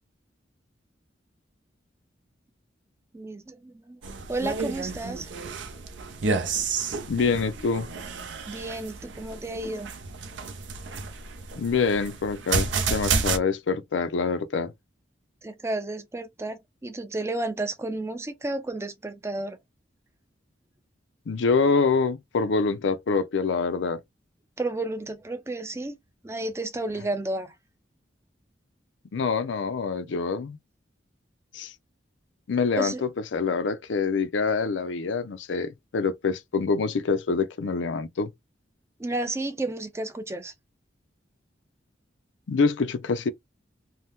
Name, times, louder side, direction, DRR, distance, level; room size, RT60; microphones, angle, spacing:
voice 1, 3.1-4.0 4.3-5.3 8.5-9.9 15.4-19.6 24.6-26.0 26.2-27.5 32.8-33.0 39.0-40.5, right 2 dB, 15° right, 0.4 m, -32 dB
sound 1, 4.0-13.4, right 4 dB, 80° right, 0.6 m, -31 dB
voice 2, 7.1-7.9 11.6-14.7 21.3-24.0 29.1-30.6 31.5-31.7 32.5-38.3 42.5-43.3, left 4 dB, 80° left, 0.5 m, -26 dB
2.8 x 2.1 x 3.4 m
head